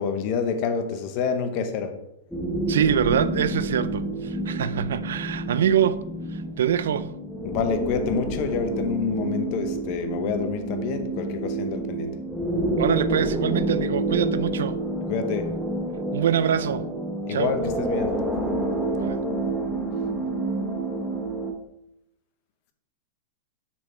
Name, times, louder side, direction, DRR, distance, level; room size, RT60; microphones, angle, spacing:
voice 1, 0.0-2.0 7.4-12.1 15.1-15.5 17.3-18.2, left 6 dB, 45° left, 0.9 m, -28 dB
sound 1, 2.3-21.5, right 2 dB, ahead, 0.9 m, -28 dB
voice 2, 2.7-6.0 6.3-7.2 12.8-14.8 16.1-16.9 17.3-17.6 19.0-19.2, right 9 dB, 80° right, 0.4 m, -24 dB
6.1 x 4.0 x 4.4 m
hypercardioid pair, 140°, 0 cm